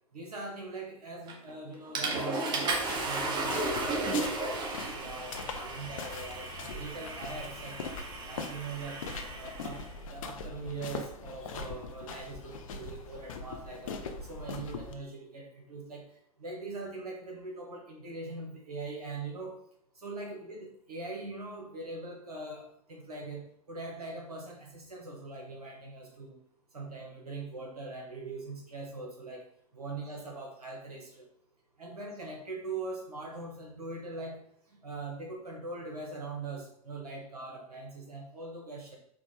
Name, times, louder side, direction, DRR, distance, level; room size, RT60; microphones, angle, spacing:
voice 1, 0.1-4.6 4.9-8.0 8.3-9.0 9.3-16.0 16.4-19.6 19.9-26.4 26.7-29.5 29.7-31.3 31.8-34.4 34.7-39.0, right 3 dB, 80° right, 0 dB, 1.0 m, -42 dB
Water / Toilet flush, 1.3-1.5 1.9-9.8, right 3 dB, 25° right, 1.0 m, -34 dB
sound 1, 2.7-14.9, left 4 dB, 60° left, 0.6 m, -42 dB
4.6 x 2.2 x 4.3 m, 0.68 s
figure-of-eight pair, 95°, 19 cm